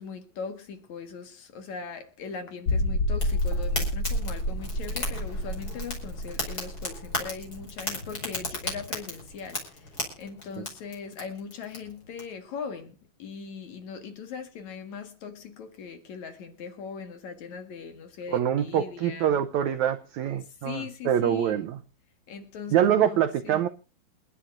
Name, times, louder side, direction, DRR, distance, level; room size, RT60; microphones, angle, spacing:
voice 1, 0.0-19.4 20.6-21.7 22.3-23.7, left 6 dB, 55° left, 2.6 m, -40 dB
sound 1, 2.7-8.1 8.4-8.5 9.0-9.1, left 1 dB, 40° left, 1.9 m, -29 dB
Fire, 3.1-12.2, left 2 dB, 25° left, 5.6 m, -36 dB
voice 2, 18.3-21.8 22.7-23.7, right 10 dB, 80° right, 1.6 m, -25 dB
28.0 x 11.0 x 2.6 m
omnidirectional pair, 4.3 m